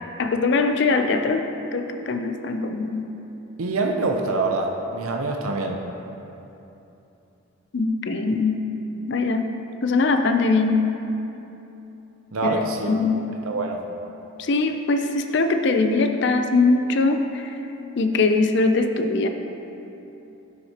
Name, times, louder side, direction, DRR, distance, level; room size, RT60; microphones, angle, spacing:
voice 1, 0.2-1.5 1.7-3.0 7.7-8.6 9.1-9.4 9.8-10.7 12.4-13.2 14.4-17.5 18.0-19.3, left 3 dB, 55° left, 6 dB, 0.5 m, -21 dB
voice 2, 3.6-5.9 12.3-12.9 13.4-13.8, right 3 dB, 75° right, 2 dB, 0.6 m, -25 dB
11.5 x 7.2 x 2.9 m, 3.0 s
head